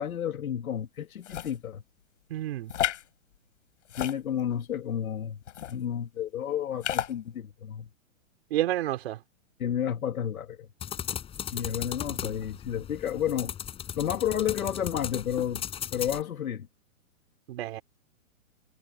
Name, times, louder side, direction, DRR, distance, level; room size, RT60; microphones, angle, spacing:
voice 1, 0.0-1.8 4.0-5.4 5.7-7.9 9.6-10.6 11.5-13.5 14.0-15.6 15.9-16.7, left 9 dB, 85° left, 2.5 m, -31 dB
sound 1, 1.2-1.6 2.7-3.0 3.8-4.6 5.5-5.7 6.8-7.1, left 11 dB, 60° left, 5.8 m, -31 dB
voice 2, 2.3-2.7 8.5-9.2 17.5-17.8, right 13 dB, 45° right, 5.3 m, -29 dB
sound 2, 10.8-16.2, left 9 dB, 15° left, 6.4 m, -37 dB
hypercardioid pair, 165°, 42 cm